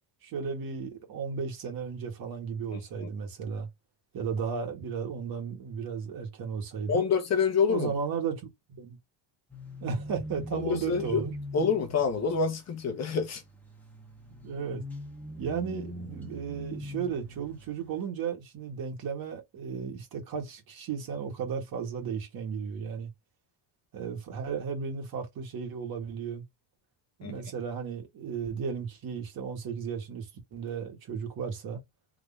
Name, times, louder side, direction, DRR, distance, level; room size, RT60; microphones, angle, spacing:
voice 1, 0.2-3.7 4.1-7.0 7.7-9.0 9.8-11.3 14.4-14.8 15.4-23.1 23.9-26.4 27.2-31.8, right 6 dB, 55° right, 1.9 m, -34 dB
voice 2, 2.7-3.1 6.9-7.9 10.5-11.2 11.5-13.4 27.2-27.3, left 5 dB, 40° left, 0.9 m, -27 dB
sound 1, 9.5-17.9, left 1 dB, 5° left, 1.1 m, -42 dB
3.8 x 3.2 x 3.7 m
cardioid pair, 170°, 42 cm